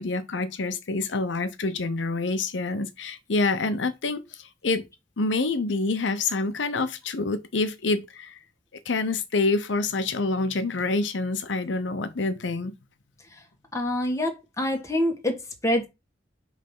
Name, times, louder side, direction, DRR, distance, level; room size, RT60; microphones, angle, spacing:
voice 1, 0.0-4.8 5.2-8.4 8.9-12.7, left 3 dB, 90° left, 0.7 m, -27 dB
voice 2, 13.7-15.9, left 1 dB, 15° left, 1.3 m, -26 dB
5.3 x 3.4 x 5.4 m
head